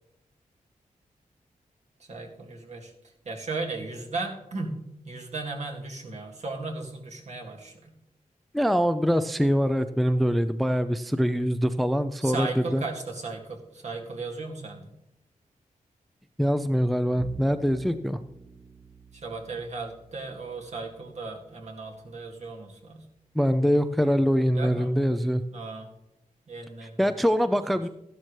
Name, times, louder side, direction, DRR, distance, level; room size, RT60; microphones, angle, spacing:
voice 1, 2.1-2.9 3.3-4.8 5.1-7.9 12.2-14.9 19.1-23.1 24.5-24.9 25.5-25.9 26.5-27.1, right 3 dB, 55° right, 1 dB, 2.1 m, -36 dB
voice 2, 8.5-12.8 16.4-18.2 23.4-25.4 27.0-27.9, equal, ahead, 11 dB, 0.4 m, -24 dB
Bowed string instrument, 17.2-23.6, right 3 dB, 40° right, 1.6 m, -50 dB
13.0 x 11.5 x 3.2 m, 0.86 s
wide cardioid pair, 125°, 14 cm